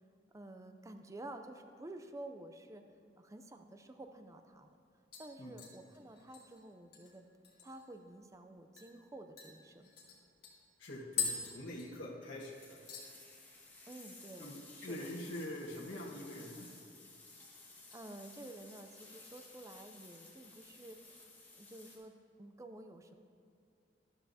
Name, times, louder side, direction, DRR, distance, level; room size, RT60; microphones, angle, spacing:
voice 1, 0.3-2.8 3.2-4.8 5.2-7.3 7.6-9.9 13.9-15.1 17.9-21.2 21.6-22.1 22.4-23.1, right 1 dB, 15° right, 7 dB, 0.4 m, -51 dB
sound 1, 4.0-4.1 4.5-4.8 5.1-8.0 8.3-8.4 8.8-8.9 9.4-12.4 12.6-13.1 13.5-13.9 14.1-14.2 16.3-17.0 17.3-18.0 18.4-18.7 19.3-20.2 20.5-20.6, left 6 dB, 55° left, 1.8 m, -44 dB
voice 2, 10.8-12.8 14.4-16.7, left 1 dB, 85° left, -5 dB, 1.5 m, -45 dB
sound 2, 12.5-22.0, left 3 dB, 10° left, 1.6 m, -56 dB
12.5 x 12.5 x 2.8 m, 2.3 s
head